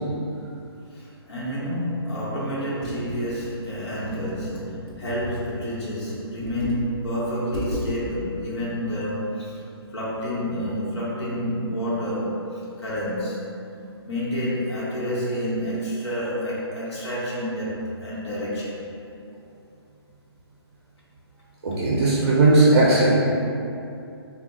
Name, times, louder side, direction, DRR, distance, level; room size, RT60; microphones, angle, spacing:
voice 1, 0.9-9.6 9.9-13.4 14.0-18.9, equal, 85° left, -8 dB, 0.9 m, -29 dB
Computer keyboard, 2.8-5.5 6.2-6.9 7.2-7.3 7.5-7.9, left 1 dB, 60° left, 0.7 m, -35 dB
voice 2, 21.6-23.2, right 2 dB, 50° right, -6 dB, 0.5 m, -17 dB
3.6 x 2.2 x 2.2 m, 2.7 s
hypercardioid pair, 155°, 14 cm